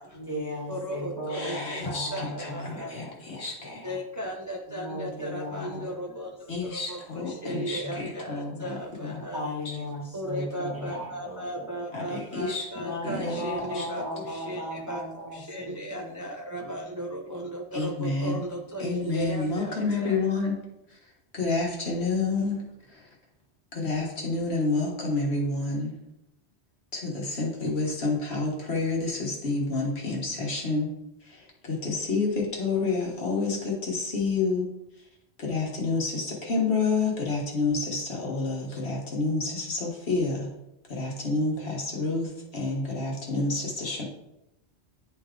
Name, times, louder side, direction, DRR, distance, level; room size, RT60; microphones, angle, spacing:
voice 1, 0.1-4.0 4.7-5.9 6.6-6.7 7.7-7.9 9.3-11.8 12.7-16.3 16.6-16.8, left 1 dB, 20° left, -5 dB, 2.2 m, -37 dB
voice 2, 0.7-3.0 3.8-9.4 10.1-20.2, right 1 dB, 20° right, 0 dB, 0.5 m, -36 dB
voice 3, 1.3-3.9 6.5-9.2 11.9-12.7 13.0-13.9 17.7-18.4 18.8-20.6 20.9-21.0 21.3-23.1 23.7-25.9 26.9-30.9 31.2-34.7 35.4-40.5 40.9-44.0, left 3 dB, 70° left, -1 dB, 1.6 m, -29 dB
10.0 x 3.4 x 3.7 m, 0.88 s
omnidirectional pair, 1.1 m